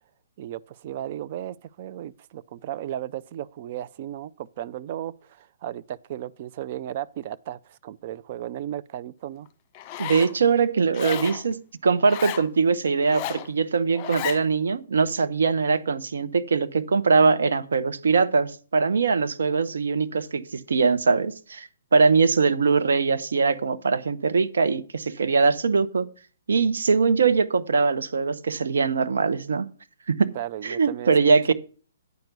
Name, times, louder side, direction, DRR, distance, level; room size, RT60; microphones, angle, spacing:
voice 1, 0.4-9.5 30.3-31.1, right 11 dB, 45° right, 0.4 m, -35 dB
Zipper (clothing), 9.7-10.3 10.9-11.4 12.0-12.5 13.0-13.5 13.9-14.4, left 12 dB, 30° left, 1.2 m, -33 dB
voice 2, 10.0-26.1 26.5-29.7 30.1-30.3 30.6-31.5, right 4 dB, 70° right, 0.9 m, -22 dB
9.3 x 6.0 x 6.6 m
figure-of-eight pair, 130°, 0 cm